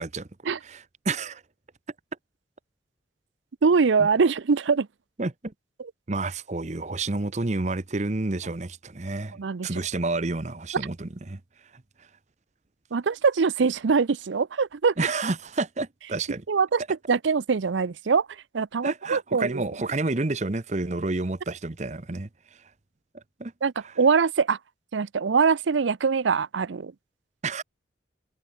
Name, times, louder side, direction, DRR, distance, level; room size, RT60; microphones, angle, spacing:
voice 1, 0.6-1.4 4.0-4.1 5.2-5.5 6.1-11.4 15.0-16.4 18.8-22.3 23.1-23.5 27.4-27.6, right 3 dB, 40° right, 0.8 m, -29 dB
voice 2, 3.6-4.9 5.8-5.9 9.4-9.7 12.9-14.9 16.5-16.8 17.1-19.7 23.6-24.6 24.9-26.9, right 5 dB, 80° right, 0.5 m, -23 dB
head